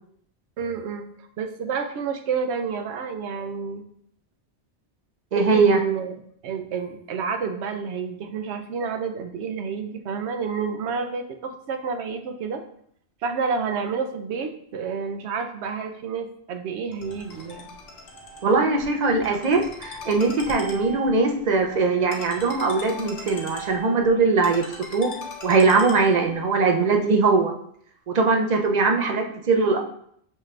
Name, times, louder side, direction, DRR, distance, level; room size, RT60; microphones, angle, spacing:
voice 1, 0.6-1.1 1.4-3.8 5.3-6.1 6.4-12.6 13.2-17.8, right 5 dB, 75° right, 6 dB, 0.9 m, -29 dB
voice 2, 5.3-5.8 18.4-24.6 24.9-25.1 25.4-27.5 28.1-29.8, right 4 dB, 50° right, 3 dB, 0.6 m, -21 dB
Ringtone, 16.9-26.5, equal, 60° left, 1.0 m, -40 dB
6.4 x 2.5 x 3.2 m, 0.67 s
omnidirectional pair, 1.2 m